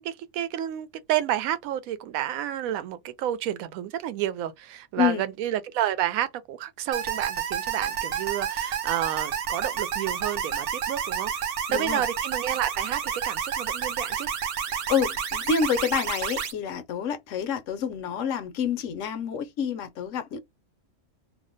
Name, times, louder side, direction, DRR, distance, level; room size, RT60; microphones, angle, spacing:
voice 1, 0.0-11.4 11.7-14.3, right 12 dB, 75° right, 1.0 m, -30 dB
sound 1, 6.9-16.5, right 8 dB, 55° right, 0.6 m, -30 dB
voice 2, 11.7-12.0 14.7-20.4, left 7 dB, 65° left, 0.9 m, -28 dB
2.6 x 2.1 x 3.6 m
omnidirectional pair, 1.5 m